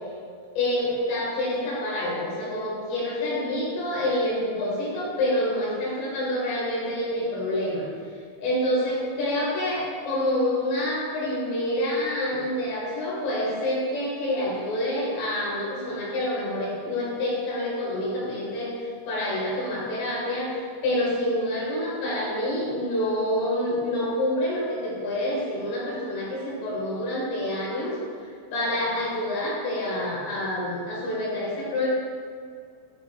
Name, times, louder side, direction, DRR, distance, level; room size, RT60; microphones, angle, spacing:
voice 1, 0.6-7.8 8.4-28.0 28.2-31.9, left 1 dB, 70° left, -6 dB, 3.6 m, -27 dB
10.5 x 4.9 x 2.3 m, 2.3 s
omnidirectional pair, 5.5 m